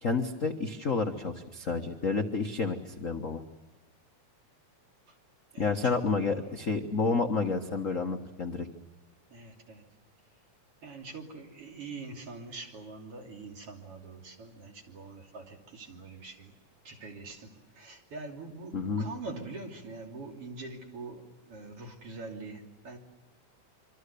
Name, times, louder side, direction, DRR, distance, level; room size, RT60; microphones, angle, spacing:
voice 1, 0.0-3.4 5.6-8.7 18.7-19.1, left 4 dB, 50° left, 4 dB, 1.0 m, -30 dB
voice 2, 5.5-6.0 9.3-9.8 10.8-16.5 16.8-23.0, right 3 dB, 50° right, 2 dB, 3.9 m, -44 dB
26.5 x 25.5 x 6.9 m, 1.2 s
omnidirectional pair, 3.5 m